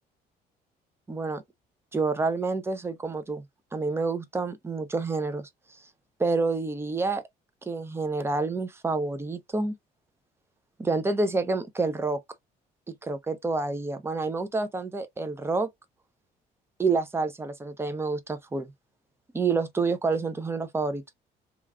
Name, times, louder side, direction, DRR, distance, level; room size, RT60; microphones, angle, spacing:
voice 1, 1.1-1.4 1.9-3.4 3.7-5.5 6.2-7.2 7.7-9.7 10.8-12.2 12.9-15.7 16.8-18.7 19.3-21.0, right 3 dB, 15° right, 0.5 m, -28 dB
3.0 x 2.4 x 2.4 m
cardioid pair, 110°, 17 cm